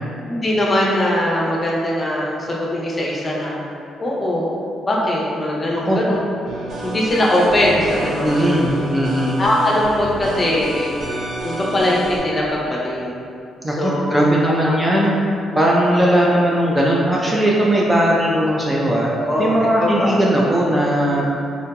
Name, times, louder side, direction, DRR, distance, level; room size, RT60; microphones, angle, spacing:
voice 1, 0.3-3.6 4.0-4.5 4.8-6.2 6.8-8.3 9.4-10.9 11.4-13.2 13.7-14.2 14.6-14.7 19.1-20.2, left 1 dB, 30° left, -4 dB, 0.6 m, -20 dB
sound 1, 6.5-12.2, right 1 dB, 65° right, 0.6 m, -29 dB
voice 2, 8.2-9.4 13.6-15.2 15.5-19.1 19.4-21.3, right 1 dB, 15° right, -4 dB, 0.3 m, -18 dB
3.7 x 2.7 x 2.2 m, 2.6 s
cardioid pair, 90°, 0 cm